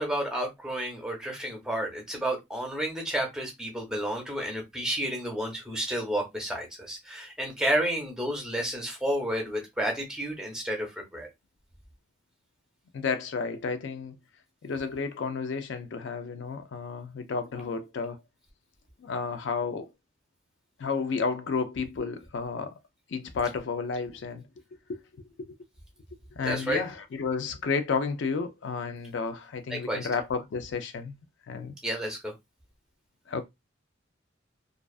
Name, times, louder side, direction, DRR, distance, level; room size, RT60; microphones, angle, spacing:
voice 1, 0.0-11.3 26.4-26.8 29.7-30.1 31.8-32.3, right 1 dB, 5° right, 0.7 m, -31 dB
voice 2, 12.9-14.1 14.6-18.2 19.0-19.9 20.8-22.8 23.1-24.4 24.9-25.0 25.4-25.5 26.4-31.2 31.5-31.7 33.3-33.4, left 5 dB, 65° left, 0.4 m, -31 dB
2.4 x 2.3 x 2.3 m
head